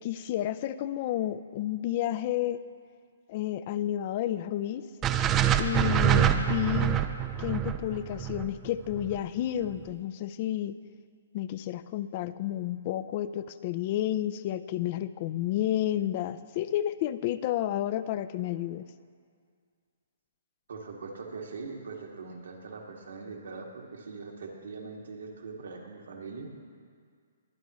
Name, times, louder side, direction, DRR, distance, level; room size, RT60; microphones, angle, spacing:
voice 1, 0.0-2.6 3.3-4.8 5.6-7.0 7.4-10.8 11.3-18.9, left 12 dB, 40° left, 14 dB, 0.4 m, -31 dB
sound 1, 5.0-9.2, right 10 dB, 20° right, 0.5 m, -25 dB
voice 2, 20.7-26.5, right 4 dB, 80° right, -1 dB, 2.0 m, -41 dB
22.0 x 9.4 x 3.1 m, 2.1 s
hypercardioid pair, 145°, 0 cm